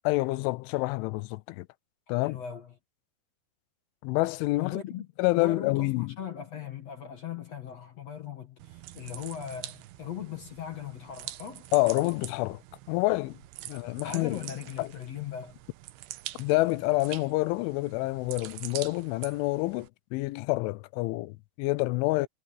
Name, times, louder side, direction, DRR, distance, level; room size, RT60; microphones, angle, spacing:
voice 1, 0.1-1.7 2.1-2.4 4.0-4.8 5.2-6.1 11.7-12.6 12.9-13.4 13.7-14.4 14.8-14.9 16.4-22.3, left 21 dB, 85° left, 3.0 m, -27 dB
voice 2, 2.2-2.7 4.6-5.1 5.3-11.7 14.0-15.6, left 9 dB, 65° left, 1.6 m, -39 dB
sound 1, 8.6-19.9, right 15 dB, 80° right, 2.5 m, -45 dB
omnidirectional pair, 5.5 m